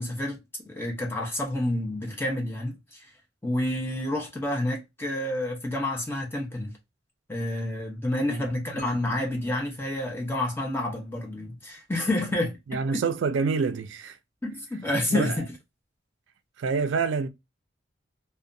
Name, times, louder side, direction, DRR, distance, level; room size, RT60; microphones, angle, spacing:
voice 1, 0.0-3.1 3.4-6.8 7.3-13.0 14.4-15.3, left 1 dB, 10° left, 0.6 m, -29 dB
sound 1, 8.8-10.7, left 1 dB, 35° left, 1.1 m, -52 dB
voice 2, 12.7-14.2 15.1-15.4 16.6-17.3, right 5 dB, 75° right, 0.4 m, -27 dB
2.6 x 2.2 x 2.5 m
head